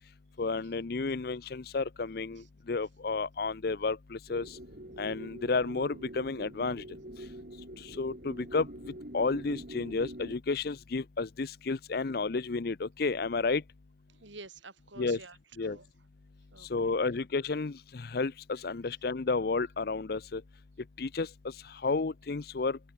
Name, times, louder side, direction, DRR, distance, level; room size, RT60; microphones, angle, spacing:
voice 1, 0.4-4.6 5.0-6.8 7.2-7.3 7.8-13.6 15.0-15.2 15.6-15.8 16.6-20.4 20.8-22.8, left 4 dB, 55° left, 0.6 m, -32 dB
sound 1, 4.3-10.4, right 1 dB, 50° right, 4.0 m, -45 dB
voice 2, 14.1-15.9 16.5-17.0, right 3 dB, 85° right, 5.3 m, -50 dB
head